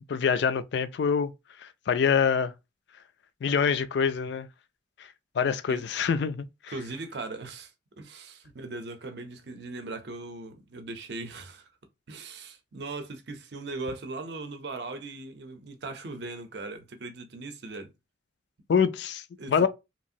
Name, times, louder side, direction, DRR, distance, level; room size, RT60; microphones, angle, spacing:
voice 1, 0.1-1.3 1.6-2.5 3.4-4.5 5.4-6.7 18.7-19.2 19.5-19.7, left 6 dB, 60° left, 0.3 m, -25 dB
voice 2, 6.7-11.7 12.1-17.9 19.4-19.7, right 3 dB, 60° right, 0.6 m, -39 dB
3.0 x 2.5 x 2.6 m
head